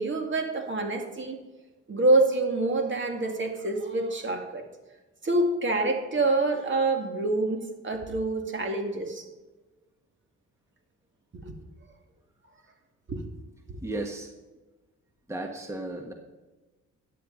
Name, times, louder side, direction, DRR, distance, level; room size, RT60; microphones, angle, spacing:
voice 1, 0.0-1.4 1.9-4.6 5.2-9.3 11.3-11.5 13.1-13.2 13.7-13.8, right 2 dB, 40° right, 4 dB, 2.2 m, -26 dB
voice 2, 13.8-14.3 15.3-16.1, right 2 dB, 10° right, 3 dB, 1.3 m, -34 dB
13.5 x 9.9 x 4.0 m, 1.2 s
cardioid pair, 90°, 30 cm